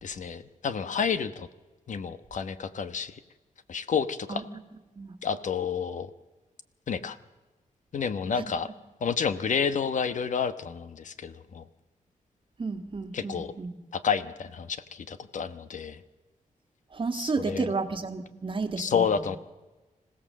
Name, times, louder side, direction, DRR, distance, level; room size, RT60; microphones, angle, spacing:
voice 1, 0.0-1.5 1.9-3.1 3.7-4.4 5.2-6.1 6.9-7.2 7.9-8.7 9.0-11.6 13.1-13.5 13.9-16.0 17.1-17.7 18.8-19.4, left 6 dB, 65° left, 12 dB, 1.2 m, -30 dB
voice 2, 12.6-13.8 16.9-19.4, right 4 dB, 35° right, 8 dB, 1.7 m, -32 dB
26.5 x 16.5 x 7.6 m, 1.1 s
wide cardioid pair, 140°, 14 cm